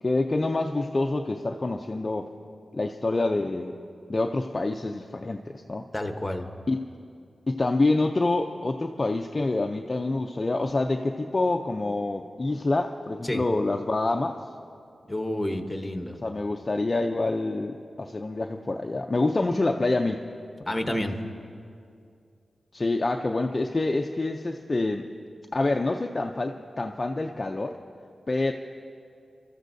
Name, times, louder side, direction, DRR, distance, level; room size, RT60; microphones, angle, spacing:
voice 1, 0.0-2.3 2.7-3.8 4.1-5.9 6.7-6.8 7.5-14.4 16.2-20.2 22.7-25.0 25.5-27.8 28.3-28.5, left 2 dB, 30° left, 3 dB, 0.5 m, -27 dB
voice 2, 5.9-6.5 13.2-13.4 15.1-16.2 20.7-21.1, left 1 dB, 15° left, 5 dB, 1.0 m, -29 dB
29.5 x 13.5 x 2.7 m, 2.4 s
wide cardioid pair, 120°, 0 cm